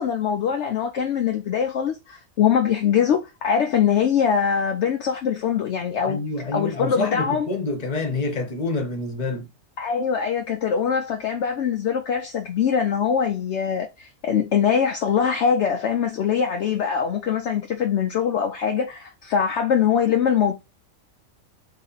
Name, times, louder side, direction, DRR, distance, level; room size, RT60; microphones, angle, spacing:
voice 1, 0.0-6.2 6.5-7.5 9.8-20.5, left 7 dB, 65° left, 0.8 m, -22 dB
voice 2, 6.1-9.5, left 3 dB, 30° left, 1.0 m, -27 dB
3.2 x 2.8 x 3.9 m
omnidirectional pair, 1.5 m